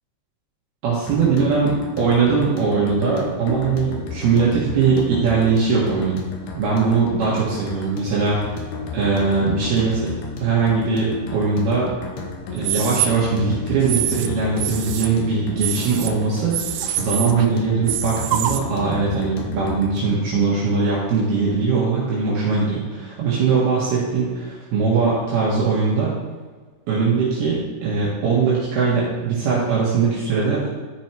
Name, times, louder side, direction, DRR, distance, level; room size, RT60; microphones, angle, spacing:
voice 1, 0.8-6.2 6.5-8.5 8.9-10.1 10.4-11.9 12.5-26.1 26.9-30.7, right 4 dB, 65° right, -7 dB, 3.3 m, -21 dB
sound 1, 1.1-20.3, left 4 dB, 75° left, 3.0 m, -33 dB
sound 2, 12.6-13.1 13.8-14.3 14.6-15.1 15.6-16.1 16.5-17.5 17.9-18.6, right 11 dB, 85° right, 2.8 m, -25 dB
13.0 x 5.2 x 4.5 m, 1.4 s
omnidirectional pair, 5.1 m